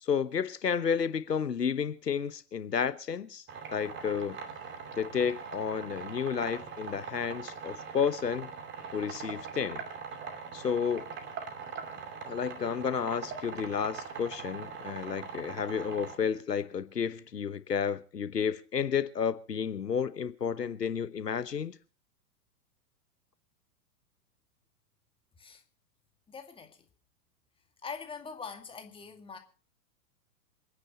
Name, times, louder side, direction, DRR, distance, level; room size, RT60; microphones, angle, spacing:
voice 1, 0.0-3.4 3.7-4.4 5.0-8.5 8.9-9.8 10.5-11.1 12.2-21.8, left 7 dB, 80° left, 1.1 m, -31 dB
sound 1, 3.5-16.2, right 6 dB, 25° right, 2.5 m, -42 dB
voice 2, 26.3-26.8 27.8-29.4, left 5 dB, 10° left, 2.0 m, -43 dB
28.0 x 9.9 x 4.2 m
figure-of-eight pair, 105°, 47 cm